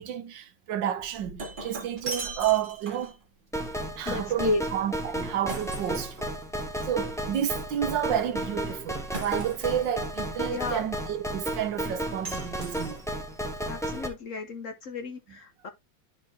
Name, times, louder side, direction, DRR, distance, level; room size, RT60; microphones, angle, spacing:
voice 1, 0.0-3.2 4.0-6.2 6.9-13.0, right 10 dB, 80° right, 1.6 m, -30 dB
Shatter, 1.0-3.2 5.5-6.8 9.1-9.9 12.2-13.3, right 3 dB, 30° right, 1.6 m, -39 dB
sound 1, 3.5-14.1, right 1 dB, ahead, 0.9 m, -33 dB
voice 2, 4.1-4.6 10.5-10.8 13.7-15.7, left 3 dB, 55° left, 1.0 m, -32 dB
10.5 x 4.3 x 2.9 m
omnidirectional pair, 2.0 m